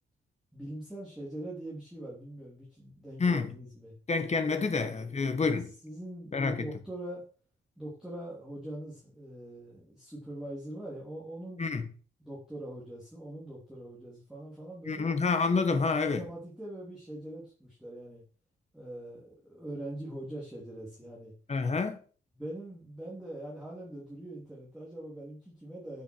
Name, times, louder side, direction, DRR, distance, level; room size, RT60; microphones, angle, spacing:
voice 1, 0.5-3.9 4.6-7.3 7.8-11.6 12.2-15.1 16.0-18.2 18.7-21.3 22.3-26.0, right 1 dB, 5° right, 3.3 m, -43 dB
voice 2, 3.2-3.5 4.1-5.7 6.3-6.7 11.6-11.9 14.9-16.3 21.5-22.0, left 4 dB, 30° left, 1.5 m, -28 dB
8.8 x 6.3 x 6.4 m
wide cardioid pair, 150°, 21 cm